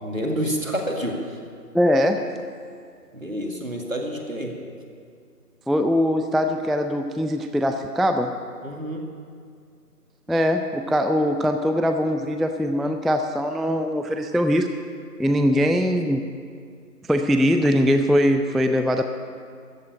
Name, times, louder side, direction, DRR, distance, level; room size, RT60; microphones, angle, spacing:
voice 1, 0.0-1.4 3.1-4.6 8.6-9.0 15.5-15.6, equal, 55° right, 1 dB, 2.1 m, -28 dB
voice 2, 1.7-2.2 5.7-8.3 10.3-14.7 15.2-16.2 17.1-19.0, equal, ahead, 6 dB, 0.4 m, -21 dB
14.0 x 7.8 x 8.7 m, 2.2 s
figure-of-eight pair, 175°, 48 cm